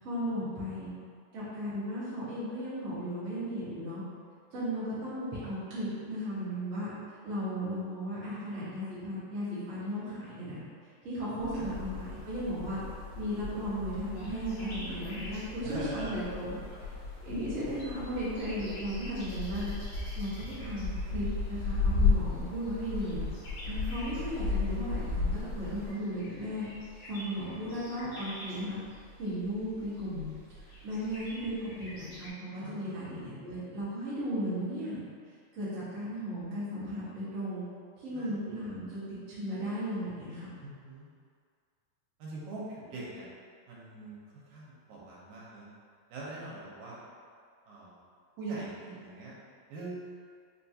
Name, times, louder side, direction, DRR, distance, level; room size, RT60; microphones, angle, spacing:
voice 1, 0.0-0.9 1.3-4.0 4.5-6.9 7.2-10.6 11.0-12.8 13.2-16.5 17.2-19.7 20.1-23.2 23.6-26.7 27.1-28.8 29.2-30.3 30.6-35.0 35.5-37.6 38.0-40.5, equal, 55° right, -12 dB, 0.8 m, -35 dB
sound 1, 11.4-25.9, left 4 dB, 45° left, 1.5 m, -34 dB
sound 2, 14.1-32.3, equal, 80° left, 1.0 m, -49 dB
voice 2, 15.6-16.2 16.5-16.9 32.6-33.4 38.1-38.3 40.6-41.1 42.2-43.3 43.7-45.7 46.1-47.0 47.7-48.0 48.4-49.3 49.7-50.1, right 2 dB, 85° right, -6 dB, 2.1 m, -43 dB
4.6 x 2.3 x 2.7 m, 2.1 s
omnidirectional pair, 3.3 m